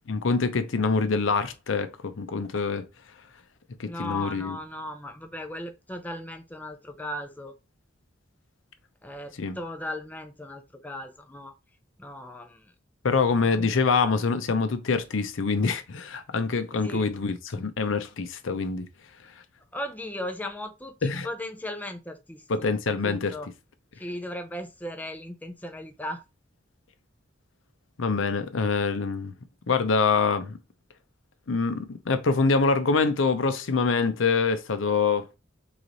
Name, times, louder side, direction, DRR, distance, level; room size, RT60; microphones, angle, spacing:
voice 1, 0.1-2.9 3.8-4.6 9.4-9.6 13.0-18.9 21.0-21.3 22.5-23.3 28.0-29.3 29.7-30.6 31.5-35.3, left 4 dB, 80° left, 0.6 m, -25 dB
voice 2, 3.9-7.5 9.0-11.5 12.0-12.6 13.3-13.9 16.8-17.1 19.7-22.7 23.0-23.5 24.0-26.2, left 1 dB, 10° left, 0.5 m, -37 dB
3.9 x 3.1 x 3.9 m
head